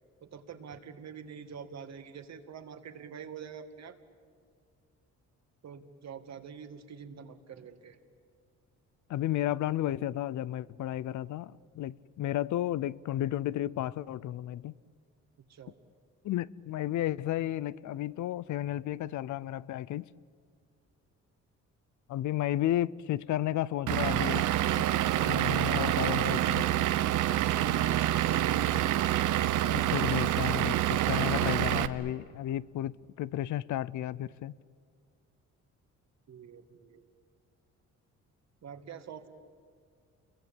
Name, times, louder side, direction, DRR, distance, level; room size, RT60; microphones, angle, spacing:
voice 1, 0.2-4.0 5.6-8.0 15.5-15.8 36.3-37.0 38.6-39.3, right 7 dB, 60° right, 2.2 m, -46 dB
voice 2, 9.1-14.7 16.2-20.0 22.1-24.5 25.2-26.7 29.7-34.5, left 13 dB, 75° left, 0.7 m, -33 dB
Vehicle / Engine, 23.9-31.9, right 13 dB, 80° right, 1.0 m, -27 dB
29.0 x 22.5 x 9.0 m
cardioid pair, 90°, 30 cm